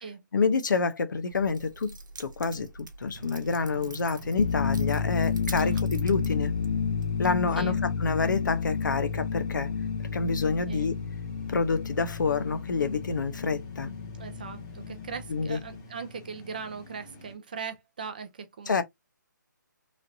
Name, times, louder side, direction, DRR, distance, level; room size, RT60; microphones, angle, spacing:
voice 1, 0.3-1.9 2.2-6.5 7.2-7.7 8.0-9.7 10.1-10.9 11.5-13.9 15.3-15.6 18.7-18.8, left 4 dB, 70° left, 0.8 m, -28 dB
Keys jangling, 1.3-7.3, right 3 dB, 70° right, 0.9 m, -45 dB
sound 1, 3.1-17.3, left 2 dB, 15° left, 0.8 m, -48 dB
sound 2, 4.4-15.8, left 5 dB, 40° left, 0.4 m, -31 dB
voice 2, 14.1-18.8, right 5 dB, 25° right, 0.4 m, -40 dB
3.2 x 2.5 x 2.6 m
hypercardioid pair, 170°, 11 cm